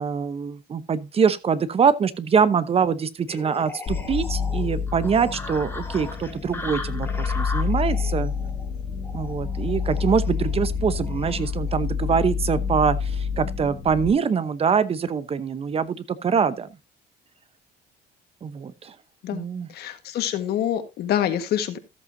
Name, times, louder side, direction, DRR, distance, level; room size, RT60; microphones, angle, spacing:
voice 1, 0.0-8.3 9.1-16.7 18.4-18.9 19.3-19.7, right 6 dB, 35° right, 0.9 m, -24 dB
sound 1, 3.3-11.5, left 2 dB, 15° left, 2.6 m, -38 dB
sound 2, 3.9-14.1, left 6 dB, 50° left, 2.1 m, -28 dB
voice 2, 19.7-21.8, left 10 dB, 70° left, 1.5 m, -26 dB
14.0 x 8.0 x 2.7 m
cardioid pair, 110°, 17 cm